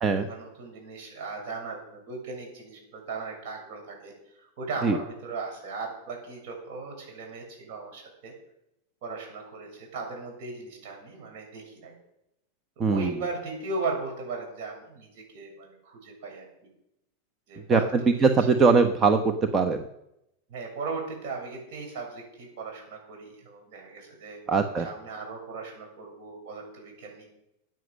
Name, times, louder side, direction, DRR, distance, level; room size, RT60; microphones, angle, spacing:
voice 1, 0.1-8.3 9.0-11.9 12.8-16.5 17.5-18.5 20.5-24.4 24.8-27.2, right 3 dB, 60° right, 1 dB, 7.3 m, -37 dB
voice 2, 12.8-13.1 17.7-19.8 24.5-24.9, right 4 dB, 25° right, 5 dB, 1.2 m, -21 dB
15.0 x 9.3 x 6.5 m, 0.84 s
hypercardioid pair, 100°, 0 cm